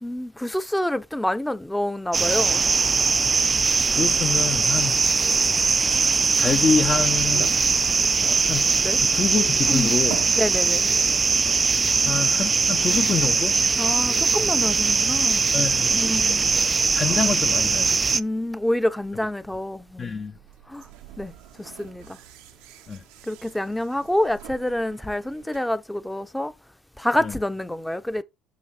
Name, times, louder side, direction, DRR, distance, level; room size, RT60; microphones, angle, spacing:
voice 1, 0.0-2.7 8.7-9.0 9.7-9.9 10.4-10.9 13.8-15.5 16.0-16.5 17.0-17.2 18.1-20.2 20.7-20.9 21.2-22.2 23.2-26.5 27.0-28.2, left 1 dB, 5° left, 0.7 m, -27 dB
sound 1, 2.1-18.2, right 4 dB, 30° right, 0.3 m, -21 dB
voice 2, 3.6-5.0 6.0-7.5 8.5-8.7 9.0-10.2 12.0-13.5 15.5-16.0 16.9-18.0 20.0-20.3 22.9-23.0 27.2-27.4, left 6 dB, 40° left, 0.7 m, -26 dB
sound 2, 6.5-25.6, right 12 dB, 80° right, 0.8 m, -46 dB
5.5 x 5.0 x 4.1 m
supercardioid pair, 75°, 0 cm